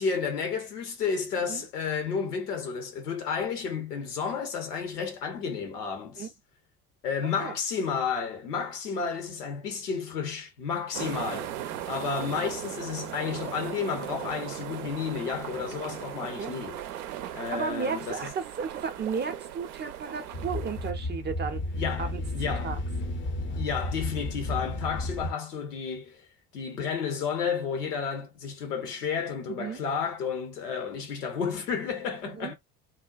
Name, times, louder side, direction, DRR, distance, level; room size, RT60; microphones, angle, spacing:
voice 1, 0.0-6.3 7.0-11.5 11.9-16.8 17.3-18.2 21.7-22.7 23.4-26.2 26.5-32.5, left 6 dB, 75° left, 0.9 m, -32 dB
sound 1, 10.9-20.9, right 11 dB, 70° right, 0.5 m, -38 dB
voice 2, 17.5-21.6 22.0-22.2 22.6-22.8 29.5-29.8 32.2-32.5, right 6 dB, 25° right, 0.5 m, -34 dB
sound 2, 20.3-25.3, left 1 dB, 25° left, 0.5 m, -32 dB
2.6 x 2.2 x 2.4 m
figure-of-eight pair, 55°, 46 cm